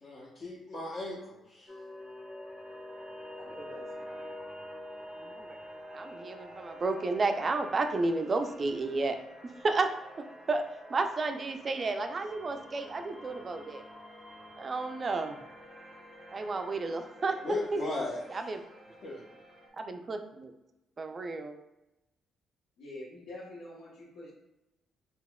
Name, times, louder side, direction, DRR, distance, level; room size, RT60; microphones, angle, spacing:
voice 1, 0.0-1.7 17.4-18.5 19.0-19.2, left 2 dB, 50° left, -7 dB, 0.9 m, -37 dB
sound 1, 1.7-19.7, equal, 5° left, 1.0 m, -47 dB
voice 2, 3.4-4.3 22.8-24.3, left 1 dB, 80° left, -7 dB, 0.9 m, -46 dB
voice 3, 5.9-9.9 10.2-10.6 10.9-13.9 14.6-15.4 16.3-17.4 17.7-17.8 18.3-18.6 19.8-20.5 21.0-21.5, right 3 dB, 35° right, 7 dB, 0.4 m, -32 dB
4.0 x 2.8 x 2.2 m, 0.94 s
cardioid pair, 90°, 0 cm